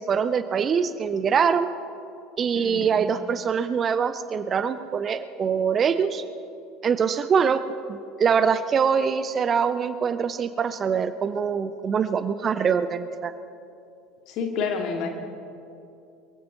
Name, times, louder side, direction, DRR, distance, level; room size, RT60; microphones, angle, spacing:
voice 1, 0.0-1.7 2.4-6.2 6.8-7.6 7.9-13.3, right 6 dB, 35° right, 13 dB, 0.7 m, -24 dB
voice 2, 2.5-2.9 14.3-15.1, left 5 dB, 50° left, 3 dB, 2.2 m, -28 dB
22.5 x 15.5 x 4.2 m, 2.6 s
figure-of-eight pair, 70°, 0 cm